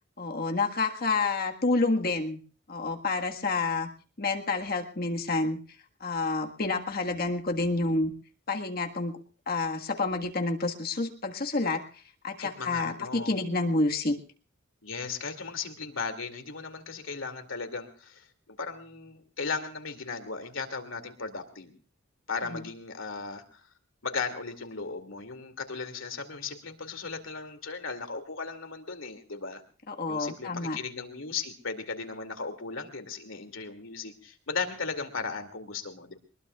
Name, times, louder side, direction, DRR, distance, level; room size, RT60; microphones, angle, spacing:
voice 1, 0.2-2.4 2.7-3.9 4.2-5.6 6.0-8.1 8.5-9.2 9.5-14.2 22.5-22.6 29.9-30.8, left 3 dB, 45° left, 3 dB, 1.6 m, -29 dB
voice 2, 12.4-13.3 14.8-21.7 22.3-23.6 24.0-29.6 30.1-36.1, left 4 dB, 70° left, 7 dB, 2.5 m, -36 dB
23.0 x 21.0 x 2.4 m, 0.38 s
head